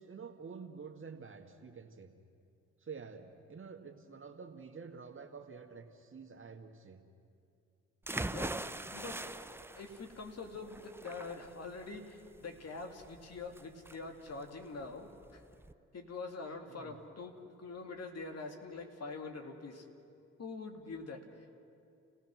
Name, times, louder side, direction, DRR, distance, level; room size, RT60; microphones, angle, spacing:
voice 1, 0.0-2.1 2.8-7.0 16.7-17.0, right 5 dB, 40° right, 4 dB, 2.0 m, -49 dB
sound 1, 8.0-15.7, right 2 dB, 5° right, 0.7 m, -43 dB
voice 2, 8.3-8.6 8.9-9.4 9.7-15.4 15.9-19.9 20.4-21.5, left 3 dB, 50° left, 3 dB, 2.4 m, -45 dB
30.0 x 16.5 x 6.2 m, 2.6 s
supercardioid pair, 55°, 32 cm